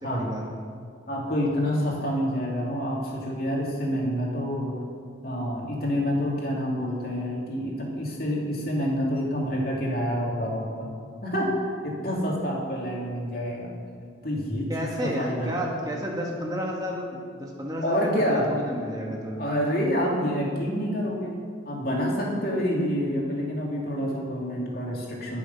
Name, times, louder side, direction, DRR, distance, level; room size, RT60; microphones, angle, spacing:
voice 1, 0.1-0.4 14.7-18.0 18.3-19.4, equal, 20° right, -1 dB, 1.5 m, -31 dB
voice 2, 1.1-4.8 5.2-10.9 11.2-13.7 14.2-15.5 17.8-18.5 19.4-21.4 21.6-25.4, equal, 50° left, -3 dB, 2.9 m, -27 dB
21.0 x 7.1 x 5.7 m, 2.2 s
head